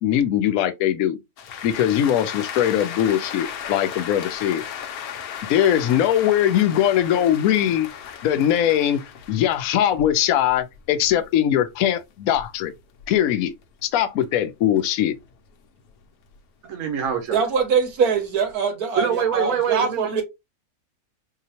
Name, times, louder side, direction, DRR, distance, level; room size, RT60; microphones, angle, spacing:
voice 1, 0.0-1.2 1.6-4.6 5.5-7.9 8.2-9.0 9.3-12.7 13.1-13.5 13.8-15.1, left 10 dB, 75° left, 1.0 m, -21 dB
sound 1, 1.4-13.8 14.2-16.4 16.8-18.5, left 8 dB, 90° left, 1.2 m, -36 dB
voice 2, 16.6-17.4 19.0-20.2, right 7 dB, 65° right, 1.1 m, -24 dB
voice 3, 17.3-20.2, right 6 dB, 85° right, 1.5 m, -23 dB
4.0 x 2.8 x 2.8 m
omnidirectional pair, 1.6 m